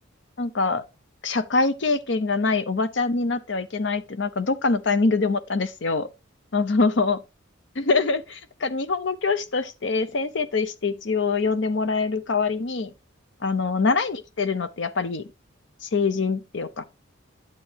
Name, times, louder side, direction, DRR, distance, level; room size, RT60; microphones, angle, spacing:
voice 1, 0.4-0.8 1.2-6.1 6.5-7.2 7.8-12.9 13.4-15.3 15.8-16.8, left 4 dB, 65° left, 0.7 m, -24 dB
9.2 x 7.8 x 2.9 m
head